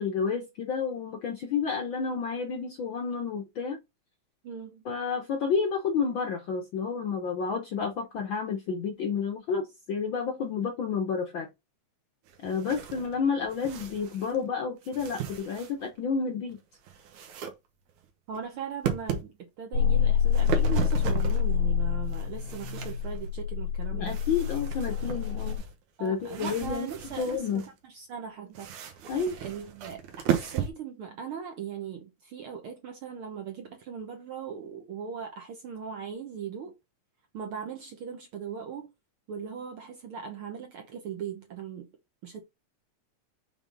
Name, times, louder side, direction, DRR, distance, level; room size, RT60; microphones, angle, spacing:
voice 1, 0.0-3.8 4.8-11.5 12.4-16.6 23.9-25.6 26.0-26.9 27.2-27.6 29.1-29.4, left 5 dB, 60° left, 1.3 m, -30 dB
voice 2, 4.4-4.8 18.3-24.2 26.0-29.1 29.4-30.0 30.3-36.7 37.3-38.9 39.3-41.9 42.2-42.4, right 7 dB, 65° right, 1.4 m, -39 dB
sound 1, 12.3-14.5 14.8-16.0 16.5-17.5 17.9-18.4 18.8-19.3 20.1-21.6 22.0-23.3 24.0-27.7 28.5-30.7, right 9 dB, 85° right, 2.6 m, -36 dB
sound 2, 19.7-25.6, left 8 dB, 85° left, 2.5 m, -27 dB
7.0 x 3.8 x 3.9 m
omnidirectional pair, 3.3 m